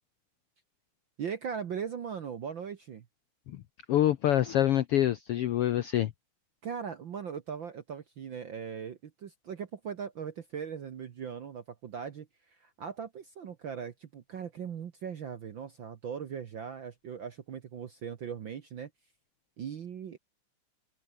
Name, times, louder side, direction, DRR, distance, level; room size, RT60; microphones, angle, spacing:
voice 1, 1.2-3.0 6.6-18.9 19.6-20.2, right 7 dB, 55° right, 1.3 m, -39 dB
voice 2, 3.9-6.1, left 12 dB, 75° left, 1.3 m, -26 dB
open air
omnidirectional pair, 3.7 m